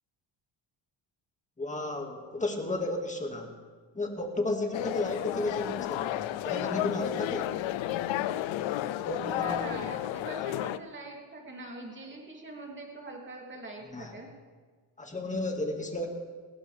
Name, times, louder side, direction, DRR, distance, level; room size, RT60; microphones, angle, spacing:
voice 1, 1.6-3.5 3.9-7.6 9.0-9.7 13.9-14.2 15.0-16.1, left 2 dB, 15° left, 3 dB, 2.1 m, -33 dB
sound 1, 4.7-10.8, left 13 dB, 85° left, 0.7 m, -32 dB
voice 2, 9.2-14.3, right 2 dB, 25° right, 0 dB, 3.1 m, -43 dB
19.0 x 17.5 x 3.5 m, 1.5 s
cardioid pair, 115°, 45 cm